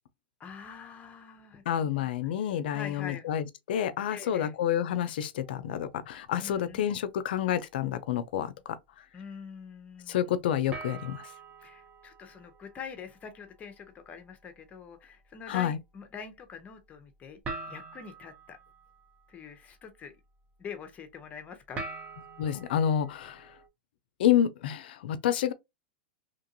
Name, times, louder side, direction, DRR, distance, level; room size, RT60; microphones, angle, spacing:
voice 1, 0.4-2.1 2.7-3.3 4.1-4.6 6.3-6.8 9.1-10.3 11.6-17.4 17.7-18.6 19.3-20.1 20.6-21.8, left 6 dB, 25° left, 0.8 m, -44 dB
voice 2, 1.7-8.8 10.1-11.3 15.5-15.8 22.4-23.5 24.2-25.5, left 10 dB, 70° left, 0.5 m, -29 dB
sound 1, 5.4-7.0 7.4-7.7 8.3-8.4 10.7-23.7, right 3 dB, 25° right, 0.9 m, -47 dB
2.9 x 2.5 x 2.7 m
hypercardioid pair, 110°, 6 cm